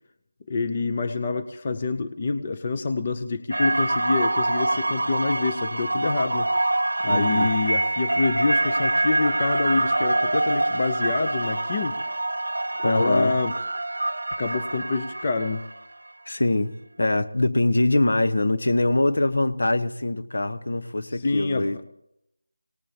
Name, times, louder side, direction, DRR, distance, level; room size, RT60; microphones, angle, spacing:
voice 1, 0.5-6.5 7.0-12.0 12.8-13.5 14.4-15.6 21.2-21.7, left 3 dB, 30° left, 8 dB, 0.7 m, -26 dB
sound 1, 3.5-15.8, right 2 dB, 75° right, 0.8 m, -25 dB
voice 2, 7.1-7.5 12.8-13.4 16.3-21.8, left 2 dB, 65° left, 9 dB, 1.1 m, -23 dB
25.0 x 18.5 x 2.9 m, 0.79 s
figure-of-eight pair, 170°, 0 cm